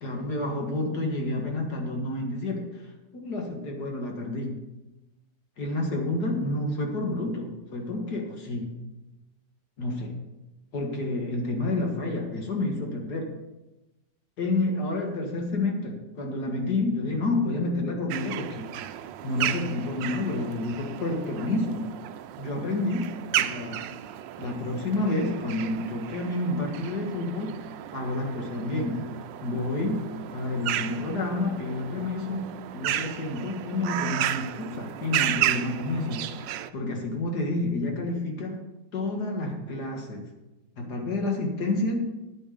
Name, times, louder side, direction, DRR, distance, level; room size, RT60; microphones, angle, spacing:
voice 1, 0.0-2.8 3.1-4.6 5.6-8.7 9.8-10.2 10.7-13.3 14.4-18.7 19.2-21.9 22.4-23.9 24.4-27.5 27.9-29.1 29.4-30.1 30.3-38.6 38.9-40.3 40.8-42.1, left 2 dB, 60° left, 1 dB, 2.2 m, -29 dB
sound 1, 18.1-36.7, right 12 dB, 85° right, 1.3 m, -33 dB
10.0 x 8.9 x 5.1 m, 1.0 s
omnidirectional pair, 1.9 m